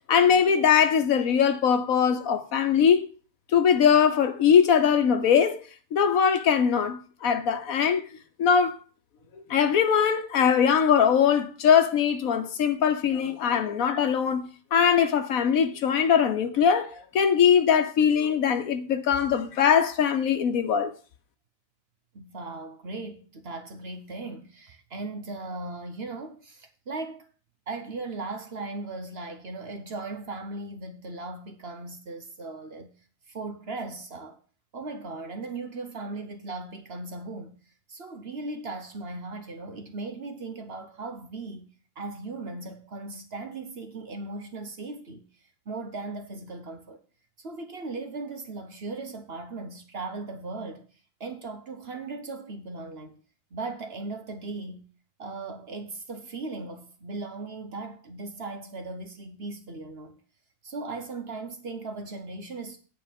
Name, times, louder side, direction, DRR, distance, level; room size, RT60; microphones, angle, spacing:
voice 1, 0.1-3.1 3.5-5.6 5.9-8.0 8.4-8.8 9.5-20.9, left 7 dB, 85° left, 1.4 m, -21 dB
voice 2, 22.1-27.3 27.7-32.9 33.3-34.4 34.7-37.6 37.9-41.7 42.0-45.2 45.7-47.0 47.4-50.9 51.2-53.2 53.5-54.9 55.2-60.2 60.6-62.8, right 3 dB, 50° right, 1.2 m, -37 dB
9.1 x 4.5 x 7.4 m
omnidirectional pair, 1.4 m